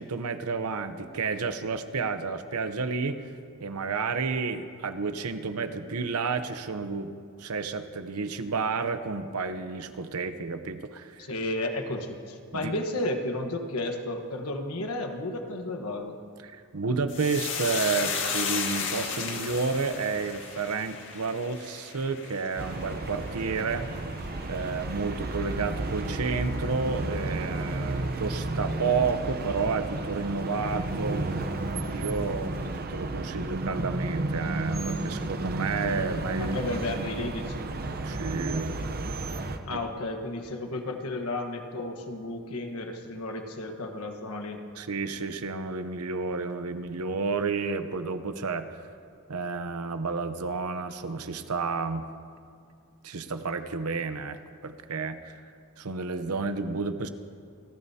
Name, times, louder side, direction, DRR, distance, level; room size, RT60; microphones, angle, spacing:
voice 1, 0.0-3.2 3.6-7.1 7.4-11.3 12.5-12.7 16.4-23.9 24.5-31.2 31.9-36.6 37.0-37.1 38.0-38.7 39.7-39.8 44.8-48.7 49.3-52.1 53.0-55.4 55.8-57.1, right 4 dB, 80° right, 10 dB, 0.8 m, -31 dB
voice 2, 11.2-16.2 36.4-37.7 39.6-44.6, left 2 dB, 75° left, 4 dB, 1.3 m, -33 dB
sound 1, 17.1-25.7 26.0-26.7 26.9-27.2, left 5 dB, 60° left, 1.8 m, -35 dB
sound 2, 22.5-39.6, right 2 dB, 45° right, 0.8 m, -32 dB
28.0 x 12.5 x 2.8 m, 2.3 s
head